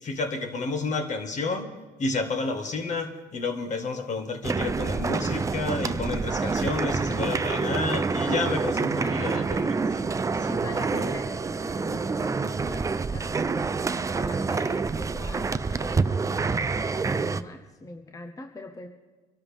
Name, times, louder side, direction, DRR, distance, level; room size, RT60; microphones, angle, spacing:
voice 1, 0.0-1.7 2.0-9.8 10.4-10.8, left 3 dB, 45° left, 5 dB, 1.8 m, -30 dB
sound 1, 4.4-17.4, right 4 dB, 20° right, 0.5 m, -27 dB
voice 2, 9.0-10.1 10.4-13.7 14.1-18.9, left 2 dB, 20° left, 5 dB, 0.9 m, -41 dB
23.5 x 12.5 x 3.5 m, 1.3 s
cardioid pair, 110°, 17 cm